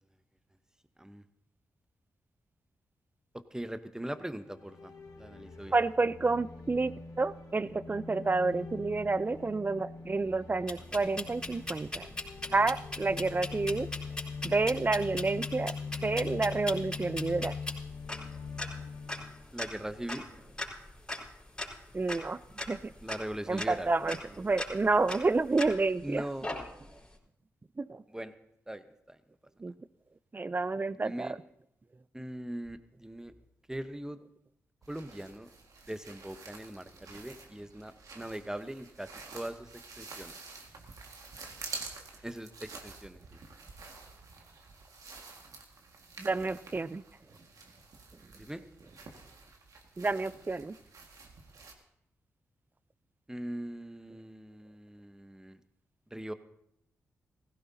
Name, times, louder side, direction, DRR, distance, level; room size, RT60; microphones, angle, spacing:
voice 1, 3.5-5.7 19.5-20.3 23.0-23.9 26.0-26.9 28.1-28.3 28.7-29.2 31.0-31.3 32.1-33.3 33.7-34.2 34.9-35.5 35.9-40.3 42.2-43.4 48.4-48.6 53.3-55.6 56.1-56.3, right 1 dB, 10° right, 10 dB, 1.0 m, -41 dB
sound 1, 4.4-20.5, left 5 dB, 65° left, 1.7 m, -43 dB
voice 2, 5.7-12.1 12.5-13.9 14.4-15.7 16.0-17.5 21.9-22.4 22.7-22.9 23.5-26.2 27.8-28.0 29.6-29.7 30.3-31.4 46.2-47.0 50.0-50.7, right 3 dB, 30° right, 17 dB, 0.5 m, -29 dB
sound 2, 10.7-26.0 26.4-27.0, left 2 dB, 15° left, 4.6 m, -40 dB
sound 3, 34.8-51.7, right 4 dB, 65° right, 1.8 m, -49 dB
16.5 x 16.0 x 2.8 m, 0.79 s
supercardioid pair, 40°, 6 cm